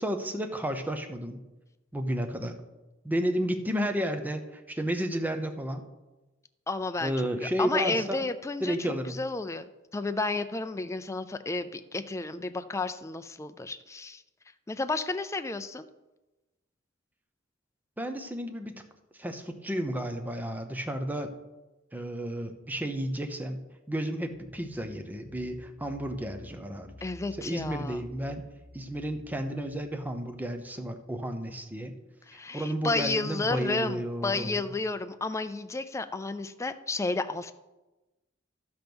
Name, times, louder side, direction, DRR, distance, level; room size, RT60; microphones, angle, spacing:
voice 1, 0.0-1.4 1.9-2.5 3.0-5.8 7.0-8.3 8.6-9.2 18.0-18.8 19.2-21.3 21.9-23.6 23.9-26.9 27.4-28.4 28.7-31.9 32.3-34.7, equal, 10° right, 6 dB, 0.8 m, -32 dB
voice 2, 6.7-9.7 9.9-14.2 14.7-15.9 27.0-28.0 32.3-37.5, left 3 dB, 15° left, 10 dB, 0.4 m, -32 dB
sound 1, 24.2-30.8, left 1 dB, 55° right, 2.2 m, -52 dB
12.0 x 5.3 x 6.1 m, 1.1 s
head